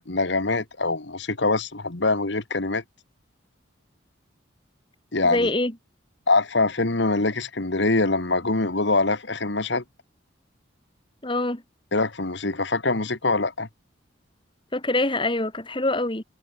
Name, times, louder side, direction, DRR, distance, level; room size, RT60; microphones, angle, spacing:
voice 1, 0.0-2.8 5.1-5.5 6.3-9.8 11.9-13.7, left 3 dB, 65° left, 1.7 m, -24 dB
voice 2, 5.2-5.7 11.2-11.6 14.7-16.2, left 2 dB, 25° left, 2.6 m, -24 dB
head